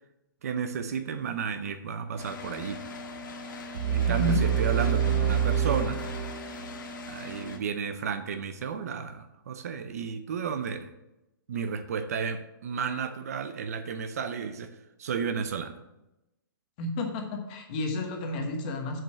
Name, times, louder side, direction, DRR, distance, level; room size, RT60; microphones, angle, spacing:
voice 1, 0.4-2.8 3.9-6.0 7.1-10.9 11.5-15.8, right 6 dB, 45° right, 10 dB, 0.7 m, -33 dB
sound 1, 2.2-7.6, left 3 dB, 65° left, 1.6 m, -40 dB
sound 2, 3.7-6.8, right 8 dB, 70° right, 1.5 m, -26 dB
voice 2, 4.1-4.4 16.8-19.0, left 2 dB, 25° left, 3 dB, 1.1 m, -31 dB
7.4 x 5.4 x 7.3 m, 0.95 s
hypercardioid pair, 180°, 12 cm